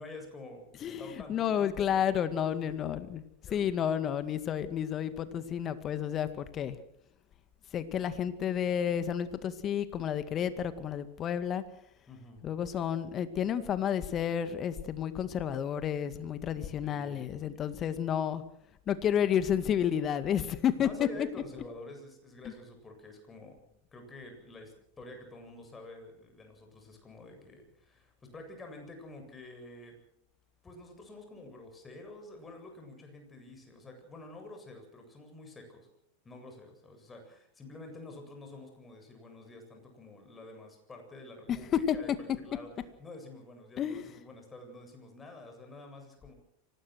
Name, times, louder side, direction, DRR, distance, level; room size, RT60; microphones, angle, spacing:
voice 1, 0.0-0.6 1.0-2.1 2.5-2.9 3.5-3.8 12.1-12.4 16.8-17.6 20.8-23.6 23.9-29.9 30.6-35.9 36.2-42.7 43.0-46.3, left 2 dB, 20° left, 4 dB, 8.0 m, -48 dB
voice 2, 0.8-3.2 3.5-6.8 7.7-11.6 12.4-18.4 18.9-21.3 41.9-42.0 43.8-44.1, left 9 dB, 35° left, 12 dB, 2.1 m, -31 dB
25.0 x 19.0 x 6.4 m, 0.73 s
hypercardioid pair, 90°, 0 cm